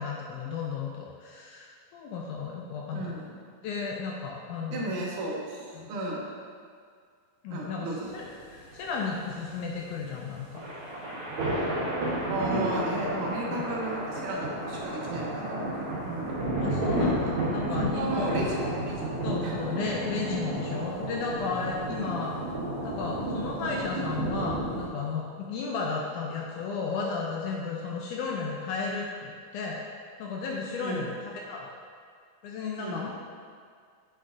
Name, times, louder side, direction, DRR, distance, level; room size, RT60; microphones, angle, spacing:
voice 1, 0.0-3.3 3.6-4.9 5.7-5.9 7.4-10.7 13.5-13.7 16.6-18.6 19.2-22.3 22.8-31.7 32.4-33.1, left 4 dB, 80° left, -1 dB, 1.9 m, -34 dB
voice 2, 2.9-3.3 4.7-6.3 7.5-8.1 12.3-16.5 17.6-19.1 19.4-19.6 30.8-31.2 32.8-33.1, right 2 dB, 75° right, -3 dB, 2.4 m, -34 dB
sound 1, 8.0-24.9, right 1 dB, 60° right, 2.7 m, -31 dB
8.0 x 6.6 x 2.6 m, 2.1 s
omnidirectional pair, 4.0 m